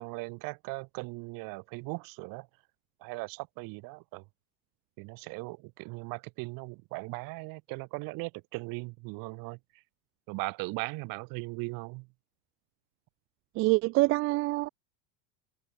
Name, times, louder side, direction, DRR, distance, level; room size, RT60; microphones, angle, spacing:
voice 1, 0.0-2.5 3.0-4.2 5.0-9.6 10.3-12.1, right 27 dB, 45° right, 4.3 m, -38 dB
voice 2, 13.6-14.7, right 21 dB, 30° right, 0.6 m, -25 dB
supercardioid pair, 150°, 45 cm